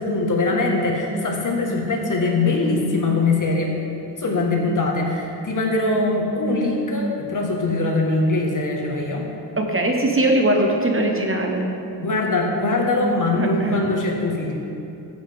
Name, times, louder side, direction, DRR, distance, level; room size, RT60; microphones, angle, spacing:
voice 1, 0.0-3.7 4.2-9.3 12.0-14.6, left 2 dB, 50° left, 0 dB, 1.6 m, -22 dB
voice 2, 9.6-11.7 13.3-13.9, right 1 dB, 30° right, 2 dB, 1.1 m, -21 dB
15.0 x 7.4 x 3.6 m, 2.8 s
wide cardioid pair, 95°, 41 cm